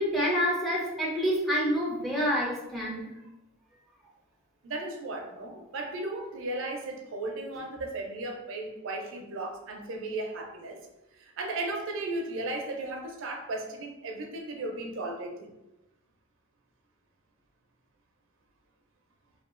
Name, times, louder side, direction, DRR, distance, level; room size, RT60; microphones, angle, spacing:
voice 1, 0.0-3.1, equal, ahead, -4 dB, 0.5 m, -27 dB
voice 2, 4.6-10.8 11.1-15.5, right 2 dB, 65° right, 2 dB, 0.4 m, -35 dB
2.9 x 2.2 x 2.4 m, 0.95 s
head